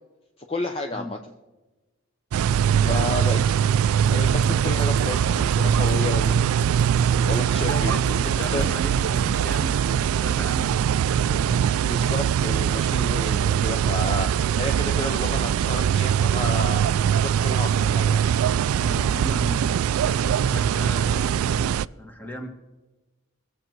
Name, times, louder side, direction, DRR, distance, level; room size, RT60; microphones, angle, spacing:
voice 1, 0.5-1.1 2.9-3.4 4.1-6.5 7.3-7.9 8.5-8.6 11.8-18.3, left 2 dB, 25° left, 4 dB, 0.6 m, -31 dB
sound 1, 2.3-21.9, right 8 dB, 85° right, 0.3 m, -22 dB
voice 2, 2.7-3.1 7.6-11.6 18.8-22.5, left 1 dB, 10° left, 4 dB, 1.4 m, -37 dB
sound 2, 4.1-9.9, right 3 dB, 60° right, 0.9 m, -36 dB
21.5 x 7.6 x 4.6 m, 1.2 s
head